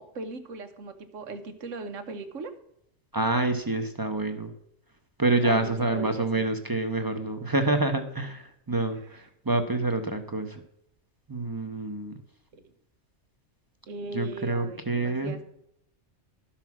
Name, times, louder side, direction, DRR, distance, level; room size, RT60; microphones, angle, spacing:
voice 1, 0.0-2.5 5.4-6.5 12.5-12.6 13.9-15.4, right 3 dB, 80° right, 8 dB, 1.4 m, -38 dB
voice 2, 3.1-4.5 5.2-10.6 11.3-12.1 14.1-15.4, right 2 dB, 20° right, 7 dB, 0.8 m, -27 dB
12.0 x 5.8 x 6.0 m, 0.77 s
omnidirectional pair, 1.3 m